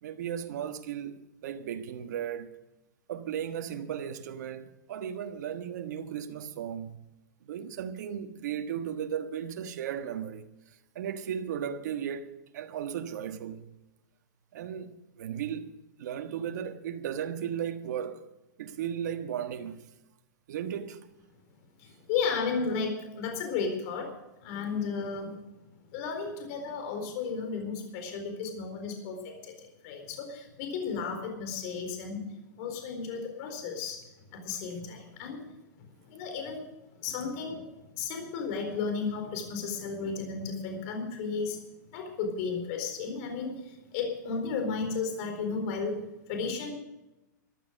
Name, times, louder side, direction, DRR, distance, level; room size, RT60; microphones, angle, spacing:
voice 1, 0.0-2.5 3.1-7.0 7.4-13.7 14.5-15.7 16.0-18.3 18.6-19.9 20.5-21.1, right 9 dB, 65° right, 1.5 m, -36 dB
voice 2, 21.8-24.1 24.4-25.4 25.9-32.2 32.6-34.0 34.3-35.4 36.0-36.6 37.0-37.6 38.0-41.6 41.9-46.7, left 5 dB, 50° left, 4.2 m, -34 dB
14.0 x 12.0 x 6.5 m
hypercardioid pair, 135°, 10 cm